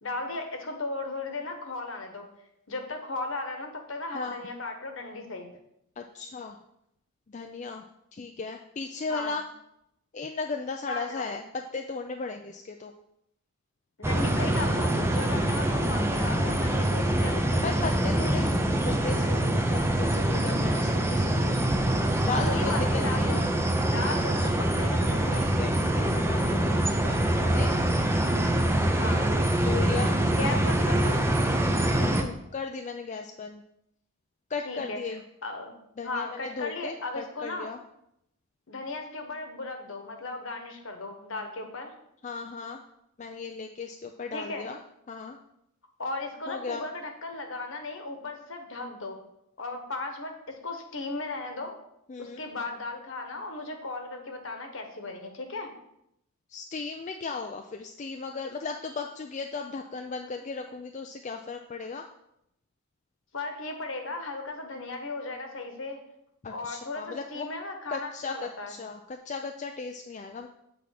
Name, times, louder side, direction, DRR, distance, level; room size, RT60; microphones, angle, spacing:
voice 1, 0.0-2.3 2.7-5.5 9.1-9.4 10.9-11.3 14.0-17.7 22.5-23.5 23.8-25.4 29.0-29.3 30.2-31.2 34.6-35.8 36.0-37.7 38.7-41.9 44.3-44.7 46.0-49.2 49.6-51.8 52.2-55.7 63.3-66.0 66.5-68.7, left 2 dB, 60° left, 4 dB, 1.3 m, -36 dB
voice 2, 6.0-6.6 7.3-7.8 8.1-9.4 10.1-11.4 11.7-12.9 17.6-21.6 22.3-23.4 24.4-24.5 25.2-27.7 28.8-29.2 29.6-30.1 32.0-33.6 34.5-35.2 36.0-37.8 42.2-42.8 43.2-44.8 45.1-45.4 46.5-46.8 52.1-52.4 56.5-62.0 66.4-67.5 67.9-70.5, left 4 dB, 35° left, 4 dB, 0.4 m, -36 dB
sound 1, 14.0-32.2, right 1 dB, 10° right, 0.6 m, -25 dB
8.3 x 3.6 x 5.9 m, 0.77 s
head